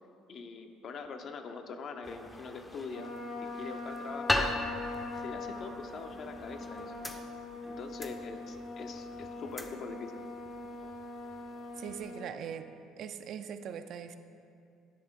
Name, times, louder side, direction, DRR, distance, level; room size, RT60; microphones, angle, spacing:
voice 1, 0.3-3.1 3.4-4.5 5.2-6.9 7.6-10.2, left 4 dB, 50° left, 6 dB, 0.6 m, -43 dB
sound 1, 2.0-12.2, left 1 dB, 10° left, 0.5 m, -40 dB
Trumpet, 2.9-12.2, left 2 dB, 75° left, 1.4 m, -42 dB
voice 2, 11.8-12.7 13.0-14.2, right 8 dB, 60° right, 9 dB, 0.4 m, -41 dB
10.5 x 3.6 x 5.1 m, 2.5 s
cardioid pair, 105°, 0 cm